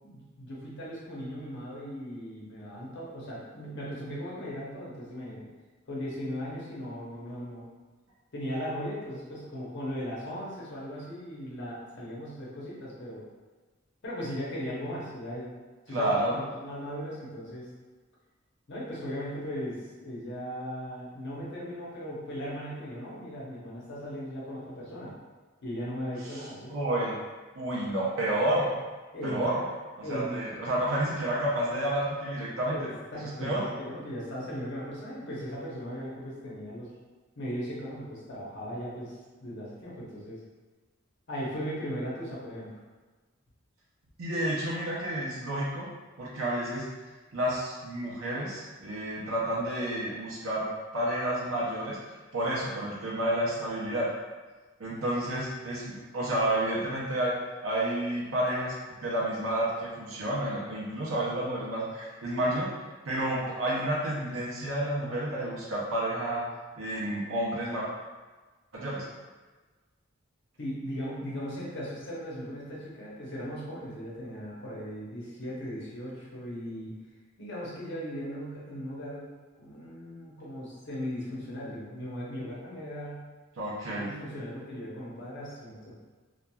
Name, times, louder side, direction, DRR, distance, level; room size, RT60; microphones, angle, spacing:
voice 1, 0.0-5.4 5.9-7.7 8.3-13.2 14.0-15.5 15.9-17.7 18.7-25.1 25.6-26.8 29.1-29.4 30.0-30.4 32.6-36.9 37.4-40.4 41.3-42.7 70.6-76.9 77.4-79.3 79.6-83.2 84.0-85.9, equal, 60° left, -6 dB, 0.8 m, -38 dB
voice 2, 15.9-16.3 26.3-27.2 27.5-28.7 29.2-29.6 30.0-32.8 33.4-33.7 44.2-45.9 46.2-46.8 47.3-50.7 50.9-52.0 52.3-54.1 54.8-57.3 57.6-58.7 59.0-62.7 63.1-66.4 66.8-67.9 68.7-69.1 83.6-84.1, right 1 dB, 80° right, -6 dB, 0.6 m, -30 dB
2.9 x 2.3 x 2.2 m, 1.3 s
head